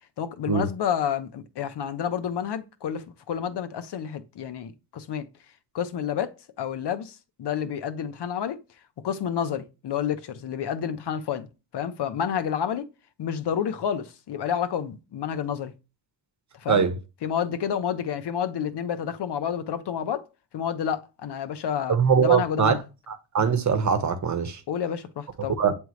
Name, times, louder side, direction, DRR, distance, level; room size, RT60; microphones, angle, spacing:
voice 1, 0.2-5.3 5.7-8.6 9.0-11.5 11.7-12.8 13.2-15.7 16.6-16.8 17.2-20.3 20.5-22.8 24.7-25.6, left 8 dB, 70° left, 1.0 m, -29 dB
voice 2, 21.9-22.8 23.1-24.6 25.6-25.8, right 6 dB, 40° right, 1.2 m, -22 dB
9.1 x 3.4 x 3.2 m
cardioid pair, 100°, 42 cm